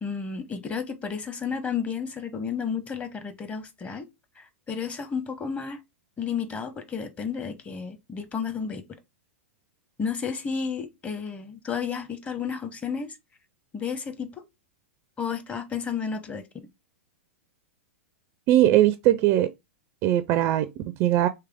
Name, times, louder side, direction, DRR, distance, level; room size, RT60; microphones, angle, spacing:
voice 1, 0.0-4.1 4.4-5.8 6.2-8.8 10.0-13.2 13.7-14.3 15.2-16.4, left 6 dB, 20° left, 0.9 m, -32 dB
voice 2, 18.5-19.5 20.0-21.3, right 13 dB, 40° right, 0.4 m, -20 dB
3.4 x 3.2 x 3.5 m
figure-of-eight pair, 105°, 7 cm